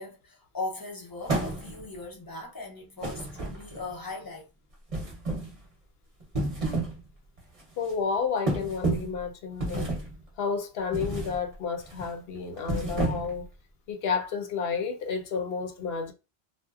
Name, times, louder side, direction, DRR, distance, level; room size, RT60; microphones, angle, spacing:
voice 1, 0.0-4.4, left 3 dB, 30° left, 0.5 m, -39 dB
sound 1, 1.3-2.0 3.0-3.9 4.9-5.6 6.2-7.0 7.4-7.6 8.5-9.2 9.6-10.2 10.9-11.4 11.8-12.1 12.6-13.4, right 2 dB, 35° right, 0.8 m, -30 dB
voice 2, 7.8-9.9 10.4-13.4 13.9-16.1, left 5 dB, 70° left, 0.8 m, -31 dB
2.8 x 2.1 x 2.3 m
omnidirectional pair, 1.1 m